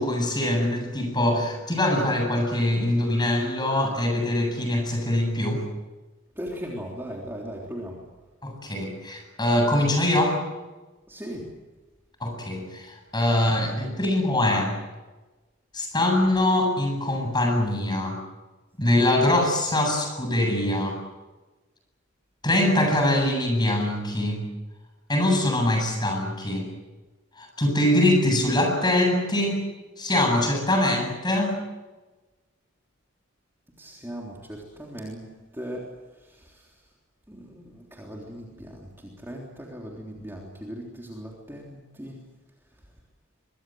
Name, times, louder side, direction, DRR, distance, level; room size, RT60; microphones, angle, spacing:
voice 1, 0.0-5.6 8.4-10.4 12.2-14.7 15.7-18.2 18.8-21.0 22.4-24.5 25.1-26.7 27.4-29.6 30.0-31.6, left 1 dB, 20° left, 3 dB, 8.0 m, -23 dB
voice 2, 6.4-8.0 11.1-11.5 33.8-35.9 36.2-36.7 37.3-42.2, equal, 10° right, -2 dB, 3.5 m, -38 dB
25.5 x 23.0 x 7.9 m, 1.2 s
head